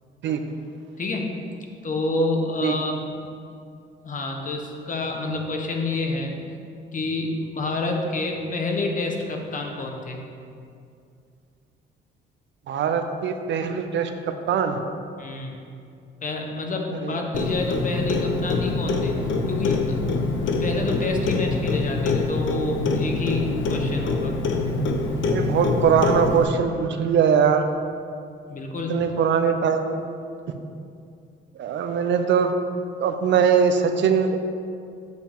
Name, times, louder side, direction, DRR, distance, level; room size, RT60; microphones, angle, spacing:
voice 1, 1.0-1.3 1.8-3.2 4.0-6.3 6.9-10.2 15.2-15.6 16.2-19.2 19.5-20.0 20.6-24.3 28.5-29.1, left 2 dB, 40° left, 2 dB, 1.2 m, -28 dB
voice 2, 12.7-14.1 14.5-14.8 17.0-17.2 25.3-27.6 28.9-30.0 31.6-32.5 33.0-34.4, right 7 dB, 70° right, 7 dB, 0.6 m, -21 dB
Clock, 17.3-26.4, left 3 dB, 70° left, 0.9 m, -25 dB
7.6 x 7.1 x 3.7 m, 2.4 s
cardioid pair, 90°, 20 cm